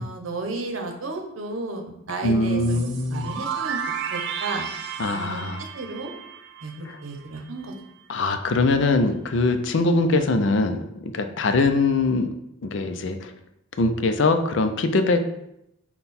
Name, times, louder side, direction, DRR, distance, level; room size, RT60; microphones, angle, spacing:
voice 1, 0.0-2.8 3.1-3.8 4.1-4.6 5.1-5.5 5.7-6.1 6.6-7.7, right 2 dB, 90° right, 3 dB, 0.8 m, -33 dB
voice 2, 2.2-3.3 5.0-5.7 6.8-7.0 8.1-12.3 12.6-13.3 13.8-15.2, left 3 dB, 65° left, 7 dB, 0.4 m, -22 dB
sound 1, 2.6-7.3, right 7 dB, 60° right, 0.4 m, -33 dB
5.6 x 2.3 x 4.1 m, 0.81 s
head